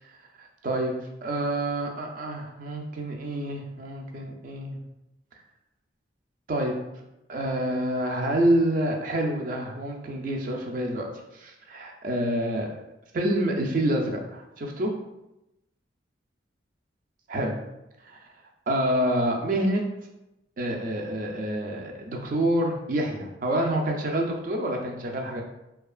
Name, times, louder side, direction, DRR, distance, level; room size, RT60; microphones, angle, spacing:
voice 1, 0.4-0.9 1.2-4.8 6.5-6.7 7.3-11.1 11.3-12.7 13.1-14.9 17.3-17.6 18.0-18.2 18.7-19.8 20.6-25.4, right 1 dB, 50° right, 1 dB, 0.4 m, -27 dB
2.8 x 2.3 x 2.4 m, 0.91 s
head